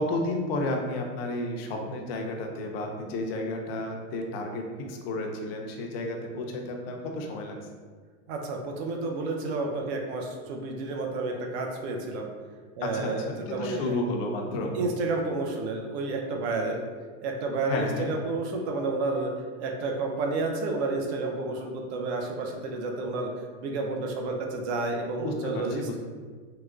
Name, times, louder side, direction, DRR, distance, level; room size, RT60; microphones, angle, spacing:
voice 1, 0.0-7.6 12.8-14.8 17.7-18.1 25.2-26.0, left 2 dB, 50° left, 2 dB, 0.6 m, -32 dB
voice 2, 8.3-12.2 12.8-14.0 14.7-16.8 17.2-19.3 19.6-26.0, right 3 dB, 55° right, 2 dB, 0.6 m, -30 dB
4.7 x 2.2 x 2.4 m, 1.5 s
supercardioid pair, 155°, 40 cm